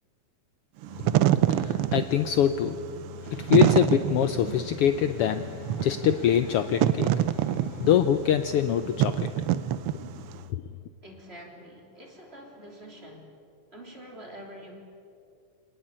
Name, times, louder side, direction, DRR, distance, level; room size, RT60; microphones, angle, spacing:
Wind / Fire, 0.8-10.4, right 12 dB, 85° right, 1.2 m, -26 dB
voice 1, 1.5-2.8 3.2-9.4, left 10 dB, 80° left, 10 dB, 1.3 m, -24 dB
voice 2, 11.0-13.4 13.7-14.8, equal, 20° right, 1 dB, 3.4 m, -46 dB
26.5 x 18.5 x 8.9 m, 2.4 s
omnidirectional pair, 3.4 m